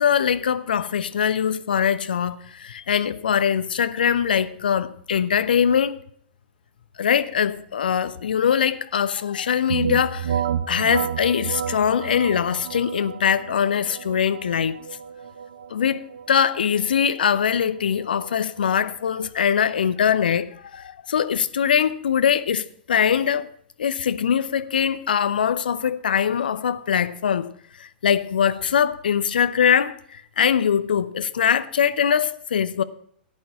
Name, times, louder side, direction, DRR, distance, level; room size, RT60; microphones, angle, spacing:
voice 1, 0.0-6.0 7.0-10.4 10.7-14.8 15.7-16.0 16.3-23.5 23.8-27.5 27.8-32.8, left 8 dB, 65° left, 0.8 m, -22 dB
sound 1, 9.7-19.3, right 8 dB, 60° right, 0.8 m, -31 dB
14.5 x 9.0 x 5.7 m
figure-of-eight pair, 100°, 5 cm